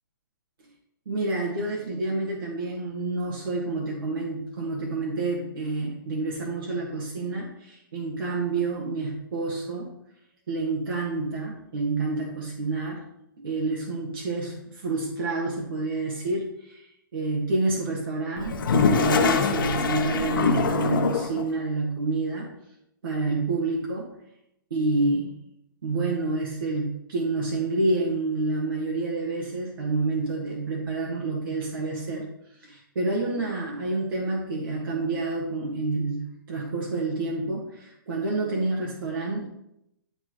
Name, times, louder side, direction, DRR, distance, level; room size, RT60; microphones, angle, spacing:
voice 1, 1.0-9.9 10.5-13.0 13.4-16.9 17.1-22.5 23.0-24.1 24.7-25.3 25.8-32.3 32.6-39.5, right 3 dB, 75° right, -4 dB, 1.9 m, -28 dB
Toilet flush, 18.4-21.4, left 5 dB, 70° left, 0.9 m, -23 dB
11.0 x 4.4 x 3.1 m, 0.80 s
hypercardioid pair, 160°, 12 cm